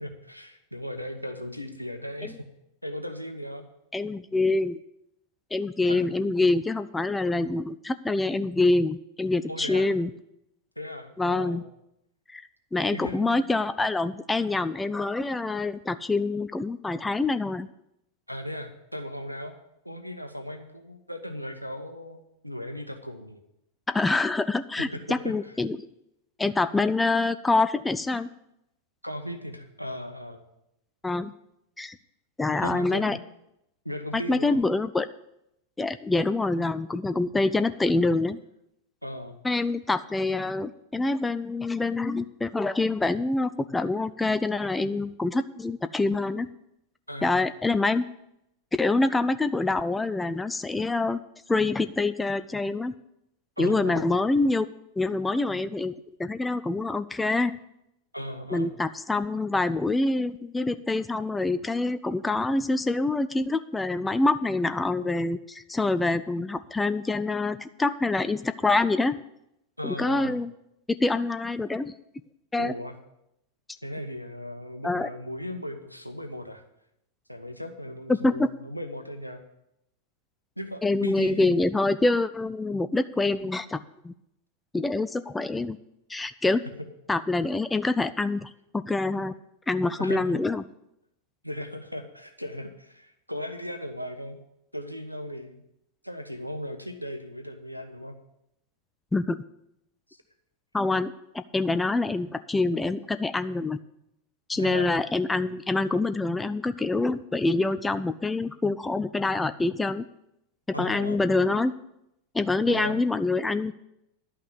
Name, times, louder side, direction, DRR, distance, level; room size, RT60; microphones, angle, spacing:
voice 1, 0.0-2.4 2.8-3.7 5.9-6.1 9.5-9.9 10.8-11.6 12.9-13.4 18.3-19.5 19.8-23.4 24.9-25.5 29.0-30.4 32.6-33.2 33.8-34.6 39.0-39.4 47.1-47.4 53.6-54.1 58.1-58.7 69.8-70.4 72.6-73.0 73.8-76.6 77.3-79.4 80.6-81.6 90.0-90.4 91.4-94.4 94.7-95.6 96.0-98.1 104.6-104.9 110.7-111.2 112.7-113.0, equal, 90° left, 6 dB, 1.0 m, -37 dB
voice 2, 3.9-4.8 5.5-10.1 11.2-11.6 12.3-17.7 23.9-25.8 26.4-28.3 31.0-31.3 31.8-32.0 32.4-33.2 34.1-35.1 35.8-38.4 39.4-46.5 47.2-48.1 48.7-51.2 51.5-52.9 53.6-54.7 55.0-55.9 56.2-57.6 58.5-69.2 69.8-70.5 71.0-71.9 72.5-72.7 74.8-75.1 78.1-78.5 80.8-84.1 84.7-85.8 86.1-86.6 87.1-89.3 89.7-90.6 99.1-99.4 100.7-103.8 104.5-110.1 110.8-111.7 112.3-113.7, left 3 dB, 10° left, 12 dB, 0.4 m, -26 dB
11.0 x 5.8 x 8.1 m, 0.82 s
figure-of-eight pair, 90°, 0 cm